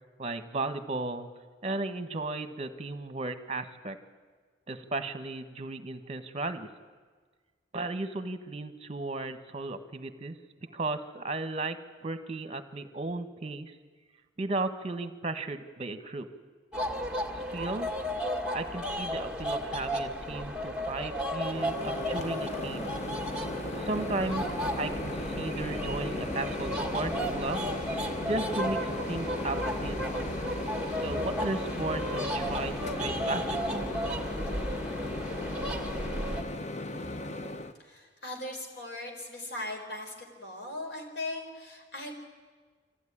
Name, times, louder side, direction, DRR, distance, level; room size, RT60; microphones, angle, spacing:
voice 1, 0.2-1.3 1.6-4.0 4.7-6.7 7.7-11.8 12.0-13.7 14.4-16.3 17.5-17.9 18.5-22.9 23.7-24.5 24.8-27.7 28.3-30.0 31.0-33.4 33.7-33.9, right 2 dB, 35° right, 10 dB, 1.3 m, -35 dB
sound 1, 16.7-36.4, equal, 5° right, 2.3 m, -34 dB
Microwave oven, 21.4-37.7, left 1 dB, 40° left, 1.0 m, -37 dB
sound 2, 24.2-27.4 27.7-31.5 31.8-35.5 35.8-37.2, right 1 dB, 15° left, 2.4 m, -49 dB
voice 2, 37.8-42.1, left 2 dB, 75° left, 2 dB, 4.5 m, -39 dB
25.0 x 15.0 x 10.0 m, 1.5 s
head